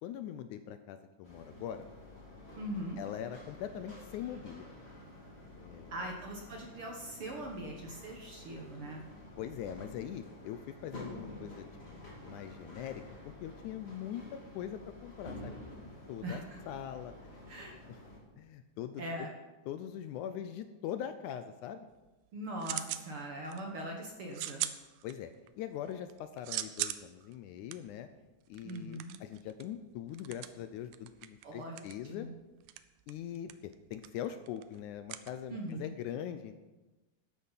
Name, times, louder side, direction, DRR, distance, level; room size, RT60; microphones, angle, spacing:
voice 1, 0.0-1.9 3.0-4.6 5.6-5.9 9.4-11.7 11.9-15.6 16.1-17.1 17.9-18.0 18.4-19.4 19.7-21.9 25.0-25.3 25.6-28.1 28.5-32.3 33.1-36.5, left 10 dB, 80° left, 10 dB, 1.9 m, -42 dB
sound 1, 1.2-18.2, left 1 dB, 20° left, 2.8 m, -50 dB
voice 2, 2.6-3.0 5.9-9.0 16.2-16.6 17.5-17.8 19.0-19.3 22.3-24.7 28.6-29.1 31.4-31.8 32.1-32.3 35.5-35.9, right 1 dB, 55° right, 1 dB, 1.6 m, -41 dB
sound 2, 21.9-23.1 23.5-23.9 24.3-25.5 25.9-35.9, right 14 dB, 85° right, 2.3 m, -41 dB
12.5 x 9.7 x 5.6 m, 1.1 s
omnidirectional pair, 3.8 m